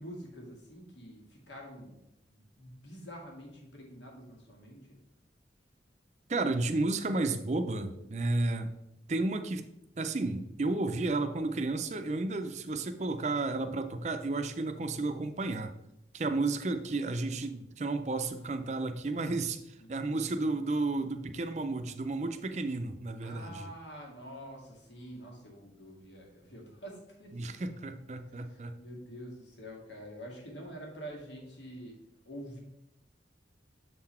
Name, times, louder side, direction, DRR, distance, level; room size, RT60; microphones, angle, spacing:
voice 1, 0.0-2.0 2.3-5.0 19.8-20.1 23.2-27.7 28.2-32.0 32.3-32.6, equal, 85° left, 0 dB, 1.8 m, -47 dB
voice 2, 6.3-8.7 9.1-9.6 10.0-15.7 16.1-23.7 27.3-28.7, right 2 dB, 40° right, 8 dB, 0.5 m, -32 dB
6.8 x 3.9 x 4.3 m, 0.87 s
head